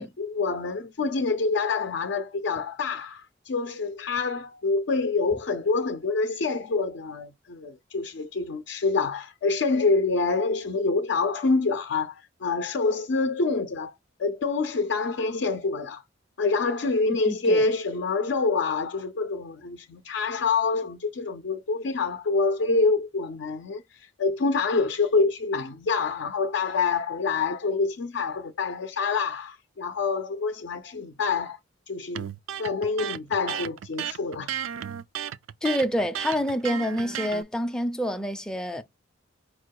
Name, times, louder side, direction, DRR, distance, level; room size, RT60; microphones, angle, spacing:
voice 1, 0.0-13.9 14.2-16.0 16.4-31.6 31.9-32.3 32.6-34.5, left 4 dB, 65° left, 0.5 m, -26 dB
voice 2, 17.3-17.6 35.6-38.8, equal, 5° left, 0.4 m, -27 dB
Electric guitar, 32.1-37.4, right 9 dB, 90° right, 0.3 m, -33 dB
4.9 x 2.2 x 4.5 m
head